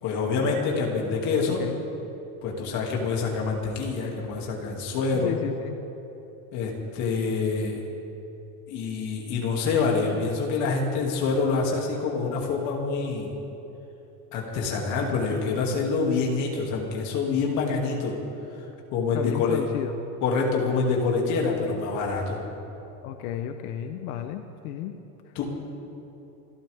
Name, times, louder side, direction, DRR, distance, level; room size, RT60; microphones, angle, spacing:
voice 1, 0.0-1.6 2.4-5.3 6.5-7.8 8.7-13.4 14.3-18.2 18.9-19.6 20.2-22.4 25.3-25.5, left 4 dB, 40° left, -1 dB, 2.6 m, -26 dB
voice 2, 1.5-1.8 5.1-5.8 19.1-19.9 23.0-25.0, left 10 dB, 85° left, 6 dB, 1.0 m, -33 dB
29.0 x 12.5 x 3.6 m, 3.0 s
cardioid pair, 180°, 43 cm